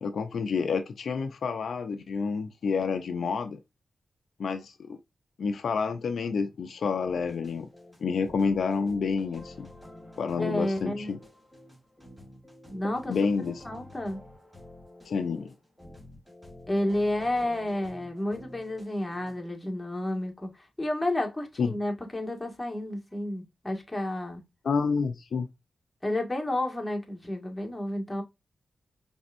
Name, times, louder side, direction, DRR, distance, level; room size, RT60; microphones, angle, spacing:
voice 1, 0.0-3.6 4.4-5.0 5.4-7.7 8.0-9.7 10.2-11.2 13.1-13.6 15.1-15.5 21.6-21.8 24.6-25.5, left 5 dB, 75° left, 0.6 m, -29 dB
sound 1, 7.0-19.4, left 1 dB, 10° right, 2.9 m, -49 dB
voice 2, 10.4-11.1 12.7-13.2 13.7-14.2 16.7-20.5 20.8-24.4 26.0-28.2, left 1 dB, 15° left, 1.8 m, -31 dB
5.2 x 3.4 x 2.6 m
cardioid pair, 55°, 0 cm